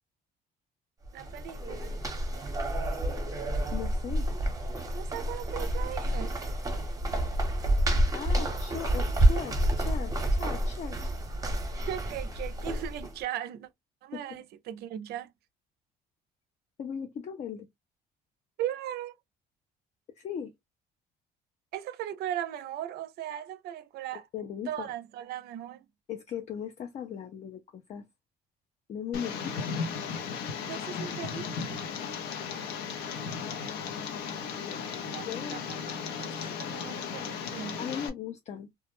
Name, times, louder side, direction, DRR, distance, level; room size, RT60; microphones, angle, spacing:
sound 1, 1.1-13.2, right 1 dB, 20° right, 0.7 m, -29 dB
voice 1, 1.1-1.9 4.9-6.4 11.9-13.7 14.0-15.3 18.6-19.2 21.7-24.3 24.7-25.9 30.7-31.8 35.0-37.8, right 11 dB, 70° right, 0.4 m, -38 dB
voice 2, 3.7-4.3 8.1-11.1 14.1-14.4 16.8-17.7 20.2-20.5 24.3-24.9 26.1-28.0 28.9-29.6 34.6-34.9 35.2-35.6 37.8-38.7, left 8 dB, 40° left, 0.4 m, -38 dB
Tick, 29.1-38.1, left 6 dB, 90° left, 0.6 m, -36 dB
2.2 x 2.0 x 2.9 m
cardioid pair, 110°, 17 cm